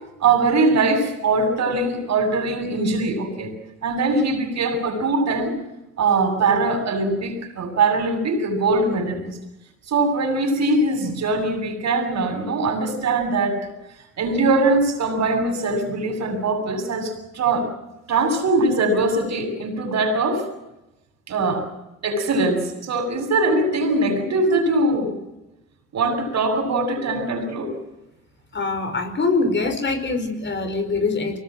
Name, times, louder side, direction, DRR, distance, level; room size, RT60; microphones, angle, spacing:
voice 1, 0.2-3.5 3.8-5.5 6.0-9.3 9.9-13.7 14.2-17.7 18.1-20.4 21.3-21.6 22.0-25.1 25.9-27.8, right 3 dB, 60° right, 4 dB, 7.6 m, -21 dB
voice 2, 28.5-31.4, left 3 dB, 40° left, 8 dB, 4.9 m, -23 dB
24.5 x 20.0 x 7.7 m, 0.95 s
cardioid pair, 90°, 30 cm